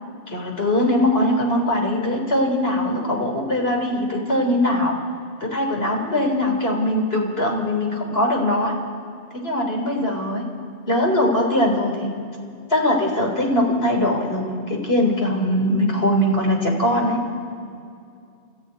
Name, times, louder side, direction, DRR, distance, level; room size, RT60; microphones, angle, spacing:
voice 1, 0.3-4.9 5.4-8.7 9.3-10.5 10.9-12.1 12.7-17.2, left 1 dB, 65° left, 0 dB, 4.2 m, -21 dB
29.5 x 14.5 x 9.5 m, 2.4 s
omnidirectional pair, 1.1 m